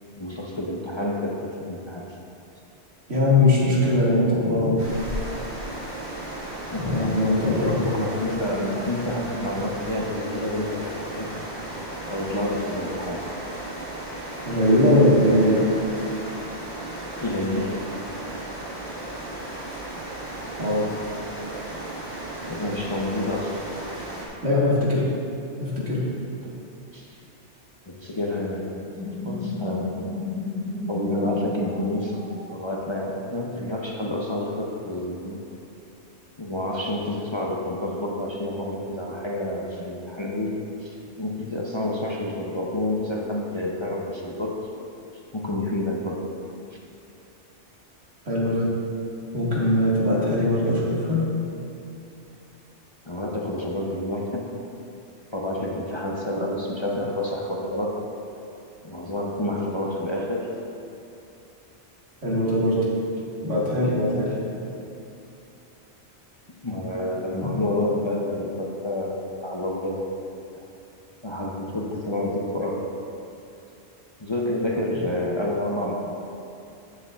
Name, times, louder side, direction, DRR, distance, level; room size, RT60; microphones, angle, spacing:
voice 1, 0.2-2.0 6.7-11.3 12.1-13.3 17.2-17.8 22.5-23.6 26.4-26.6 26.9-27.1 27.9-28.7 29.1-30.0 30.9-32.2 32.5-35.4 36.4-44.6 45.3-46.3 53.1-54.5 55.3-58.0 58.8-60.5 66.6-70.1 71.2-72.9 74.2-76.2, left 1 dB, 30° left, -3 dB, 0.6 m, -29 dB
voice 2, 3.1-4.8 6.8-7.8 14.4-15.7 20.6-20.9 24.4-25.0 25.6-26.1 48.3-48.7 49.3-51.3 62.2-62.9 63.4-64.4 67.4-67.5, left 1 dB, 85° right, -6 dB, 2.1 m, -21 dB
sound 1, 4.8-24.3, right 1 dB, 65° right, 2.0 m, -35 dB
sound 2, 28.8-33.2, left 2 dB, 15° left, 0.9 m, -32 dB
14.5 x 6.7 x 2.4 m, 2.7 s
omnidirectional pair, 1.2 m